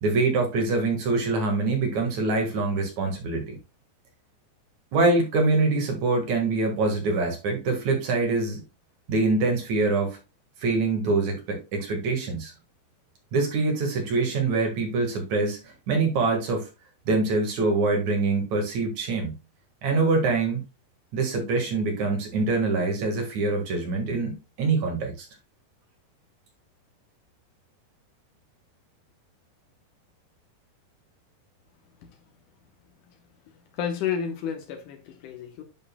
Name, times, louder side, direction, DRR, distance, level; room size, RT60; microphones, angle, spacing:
voice 1, 0.0-3.6 4.9-8.6 9.1-10.2 10.6-12.5 13.3-16.7 17.1-19.3 19.8-20.6 21.1-25.3, right 3 dB, 55° right, 2.5 m, -24 dB
voice 2, 33.7-35.6, left 8 dB, 75° left, 1.9 m, -31 dB
11.5 x 5.2 x 2.2 m
omnidirectional pair, 5.1 m